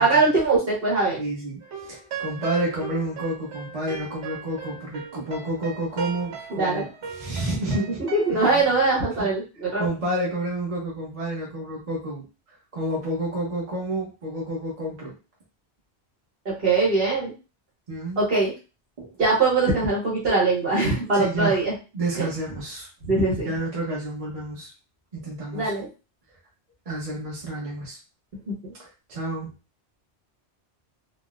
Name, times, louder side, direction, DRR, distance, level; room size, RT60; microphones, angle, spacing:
voice 1, 0.0-1.2 6.6-6.8 8.1-9.8 16.6-17.3 18.2-18.5 19.2-21.7 22.2-22.3 23.0-23.5 25.5-25.9 28.6-28.7, right 3 dB, 60° right, -4 dB, 1.5 m, -22 dB
voice 2, 1.2-6.9 7.1-8.0 8.3-8.6 9.2-9.3 9.8-12.2 12.7-15.1 17.9-18.2 19.0-19.2 21.1-21.6 21.9-22.9 23.4-24.7 25.1-25.7 26.9-28.0 28.8-29.5, right 1 dB, 35° right, -4 dB, 0.9 m, -30 dB
sound 1, 1.6-8.6, right 5 dB, 90° right, 1.0 m, -38 dB
3.9 x 2.1 x 2.4 m, 0.32 s
omnidirectional pair, 1.1 m